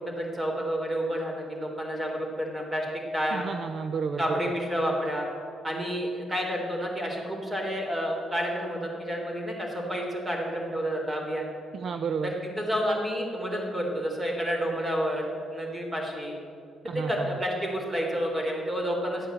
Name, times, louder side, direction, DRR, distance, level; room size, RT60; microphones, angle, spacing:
voice 1, 0.0-2.9 3.1-3.5 4.2-5.3 5.6-11.5 12.2-16.4 16.9-19.3, equal, 25° right, 0 dB, 3.8 m, -30 dB
voice 2, 3.3-4.5 11.7-12.3 16.8-17.4, right 5 dB, 55° right, 9 dB, 0.6 m, -32 dB
12.5 x 8.8 x 7.9 m, 2.6 s
cardioid pair, 90°, 0 cm